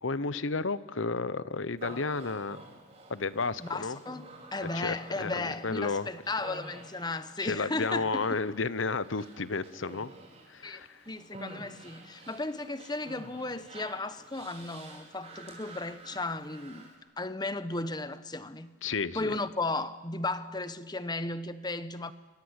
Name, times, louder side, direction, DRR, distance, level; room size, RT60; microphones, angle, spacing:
voice 1, 0.0-2.6 3.1-4.0 4.6-6.1 7.4-10.1 10.5-11.0 18.8-19.4, left 4 dB, 80° left, 0.9 m, -32 dB
Human voice, 1.8-17.0, right 2 dB, 35° right, 5.3 m, -49 dB
voice 2, 3.6-4.3 4.5-8.3 10.6-10.8 11.1-16.9 17.2-18.8 19.1-22.1, left 2 dB, 20° left, 1.1 m, -35 dB
27.0 x 24.0 x 8.2 m
head